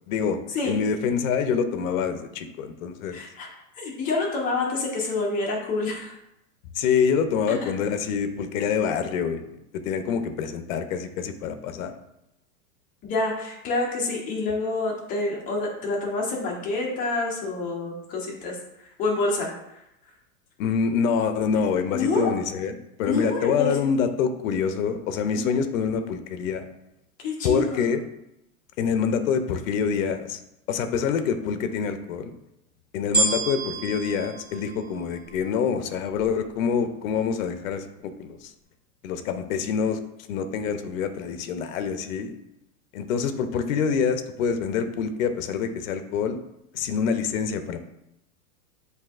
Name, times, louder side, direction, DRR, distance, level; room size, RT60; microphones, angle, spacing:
voice 1, 0.1-3.2 6.8-9.6 9.8-12.0 20.6-26.7 27.4-28.0 28.8-30.4 30.7-32.3 32.9-38.4 39.0-40.0 40.3-42.3 42.9-46.4 46.7-47.8, left 6 dB, 60° left, 9 dB, 0.6 m, -26 dB
voice 2, 3.1-3.5 3.7-6.1 7.5-7.7 13.0-19.5 21.9-22.3 23.1-23.8 25.3-25.6 27.2-28.0, left 3 dB, 20° left, -2 dB, 0.7 m, -27 dB
sound 1, 33.1-35.5 36.2-36.3, right 2 dB, 10° right, 0.9 m, -28 dB
8.0 x 2.7 x 2.4 m, 0.85 s
supercardioid pair, 160°, 44 cm